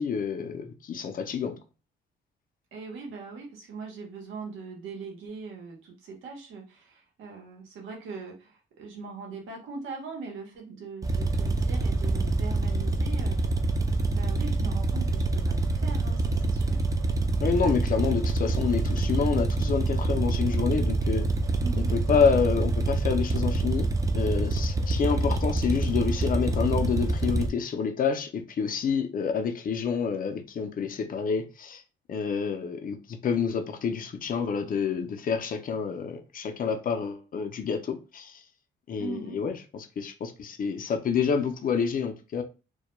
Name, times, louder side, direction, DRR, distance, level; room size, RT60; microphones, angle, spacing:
voice 1, 0.0-1.6 17.4-21.3 21.9-23.9 24.1-31.8 32.1-38.4 38.9-39.6 40.0-42.4, left 6 dB, 45° left, 0.5 m, -28 dB
voice 2, 2.7-13.4 14.1-16.8 21.6-21.9 39.0-39.4, right 4 dB, 85° right, 0.9 m, -40 dB
sound 1, 11.0-27.5, right 2 dB, 15° right, 0.4 m, -26 dB
2.2 x 2.1 x 3.0 m
cardioid pair, 90°, 20 cm